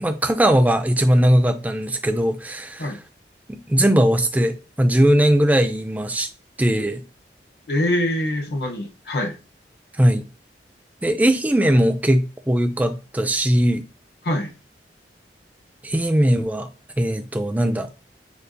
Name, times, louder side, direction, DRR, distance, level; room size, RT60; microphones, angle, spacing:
voice 1, 0.0-3.0 3.5-6.3 6.6-7.0 10.0-10.2 11.0-13.8 15.8-16.7 17.0-17.9, right 1 dB, 10° right, 0.4 m, -19 dB
voice 2, 7.7-9.4 14.2-14.5, left 1 dB, 65° left, 0.9 m, -24 dB
6.7 x 2.3 x 2.6 m
head